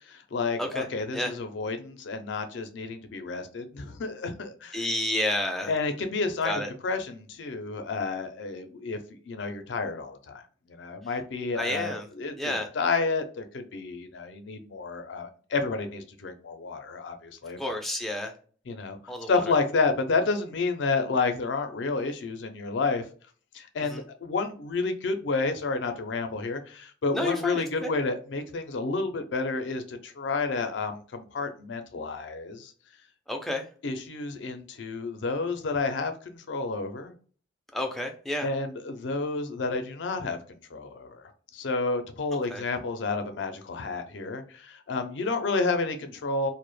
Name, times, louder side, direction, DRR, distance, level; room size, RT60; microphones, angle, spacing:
voice 1, 0.1-4.8 5.7-9.0 9.3-10.4 10.7-17.7 18.7-19.0 19.3-23.1 23.5-32.7 33.8-37.1 38.4-46.5, left 3 dB, 70° left, 7 dB, 0.4 m, -30 dB
voice 2, 4.7-5.7 6.4-6.7 11.6-12.1 12.4-12.7 17.6-18.3 19.1-19.4 23.8-24.0 27.1-27.9 33.3-33.7 37.7-38.5 42.5-42.6, left 1 dB, ahead, 2 dB, 0.3 m, -30 dB
2.0 x 2.0 x 3.0 m, 0.42 s
head